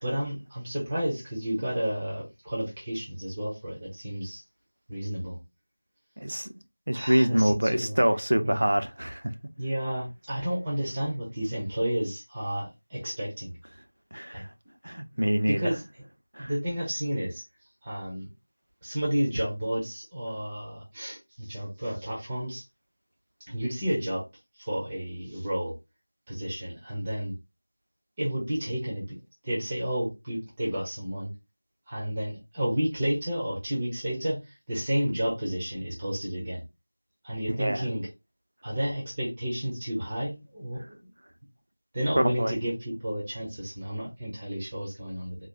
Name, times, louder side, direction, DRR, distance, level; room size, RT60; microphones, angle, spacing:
voice 1, 0.0-4.4 4.9-5.4 6.9-8.0 8.4-8.6 9.6-13.5 14.3-14.4 15.5-15.8 16.4-17.4 17.8-18.3 18.8-22.6 23.5-24.2 24.6-25.7 26.3-27.3 28.2-29.2 29.4-31.3 31.9-36.6 37.2-38.1 38.6-40.9 41.9-45.4, equal, 10° right, 0.7 m, -31 dB
voice 2, 6.2-6.5 6.9-9.3 14.1-14.5 14.8-15.6 16.3-16.5 37.5-37.9 42.2-42.6, right 1 dB, 50° right, 0.6 m, -25 dB
3.8 x 2.8 x 2.8 m
figure-of-eight pair, 180°, 0 cm